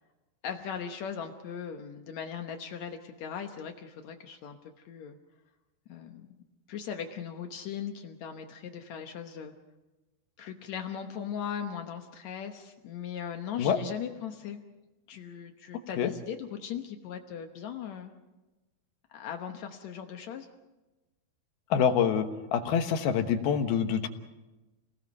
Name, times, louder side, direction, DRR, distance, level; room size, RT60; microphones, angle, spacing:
voice 1, 0.4-5.2 5.9-6.3 6.7-9.5 10.4-14.6 15.1-18.1 19.1-20.5, left 8 dB, 90° left, 5 dB, 1.5 m, -39 dB
voice 2, 21.7-24.1, left 7 dB, 70° left, 7 dB, 2.9 m, -26 dB
30.0 x 19.0 x 5.5 m, 1.1 s
omnidirectional pair, 4.9 m